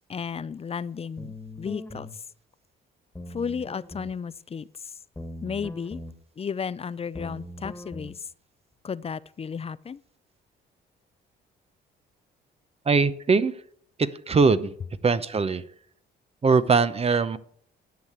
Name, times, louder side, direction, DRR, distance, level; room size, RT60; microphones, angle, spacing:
voice 1, 0.1-2.2 3.3-4.9 5.4-6.0 6.4-8.3 8.8-10.0, left 6 dB, 30° left, 0.5 m, -34 dB
sound 1, 1.2-2.1 3.1-4.2 5.2-6.1 7.1-8.1, left 1 dB, 10° left, 1.7 m, -40 dB
voice 2, 12.9-13.5 14.3-14.7 15.0-15.6 16.4-17.4, right 4 dB, 30° right, 0.8 m, -21 dB
10.5 x 6.6 x 7.9 m
cardioid pair, 90°, 20 cm